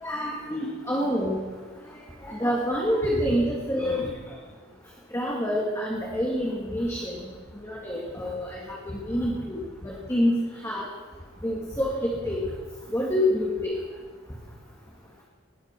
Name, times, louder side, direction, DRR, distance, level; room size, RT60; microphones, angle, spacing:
voice 1, 0.0-1.4 2.2-4.1 5.1-7.2 7.6-9.6 9.8-10.4 10.6-10.9 11.4-11.9 12.2-12.4 12.9-13.7, equal, 15° left, -4 dB, 2.2 m, -27 dB
20.5 x 8.6 x 6.2 m, 1.4 s
head